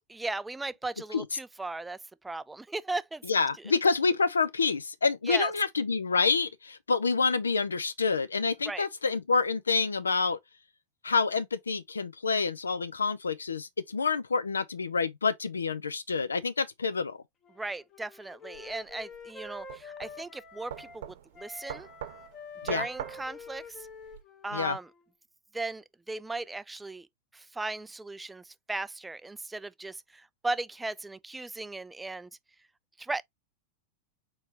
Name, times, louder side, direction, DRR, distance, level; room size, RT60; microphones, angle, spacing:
voice 1, 0.1-2.0 2.2-3.2 3.6-3.7 5.3-5.5 8.7-8.9 17.6-21.9 22.6-23.9 24.4-24.9 25.5-27.1 27.3-32.3 33.0-33.2, right 2 dB, 10° right, 0.3 m, -37 dB
voice 2, 3.3-10.4 11.0-17.2 22.6-22.9 24.5-24.8, left 4 dB, 75° left, 0.6 m, -27 dB
Wind instrument woodwind instrument, 17.4-21.0 21.3-25.1, left 3 dB, 30° left, 1.2 m, -47 dB
sound 1, 18.5-24.2, right 10 dB, 60° right, 0.9 m, -43 dB
4.4 x 4.1 x 2.9 m
figure-of-eight pair, 90°, 0 cm